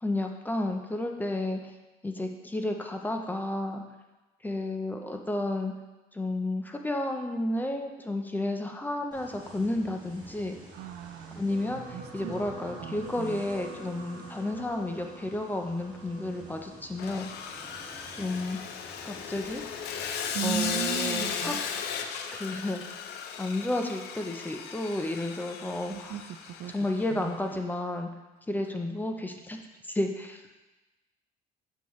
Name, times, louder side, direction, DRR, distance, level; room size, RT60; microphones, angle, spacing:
voice 1, 0.0-1.6 2.0-3.8 4.4-5.7 6.1-10.6 11.3-17.3 18.1-18.6 19.0-19.6 20.4-21.5 22.3-23.1 23.4-26.2 26.7-28.1 28.5-29.6 29.9-30.4, left 2 dB, 10° left, 4 dB, 0.6 m, -32 dB
sound 1, 9.1-21.1, right 2 dB, 25° right, 1.6 m, -51 dB
voice 2, 10.7-11.4 11.9-12.3 12.7-13.4 20.3-21.6 25.9-26.7 27.1-27.4, right 9 dB, 70° right, 10 dB, 0.4 m, -36 dB
sound 2, 11.5-19.9 20.7-20.9 21.2-21.3, right 2 dB, 55° right, 1.5 m, -47 dB
Sawing, 17.0-27.2, left 7 dB, 75° left, 0.6 m, -36 dB
6.7 x 5.5 x 3.1 m, 1.1 s
cardioid pair, 110°, 17 cm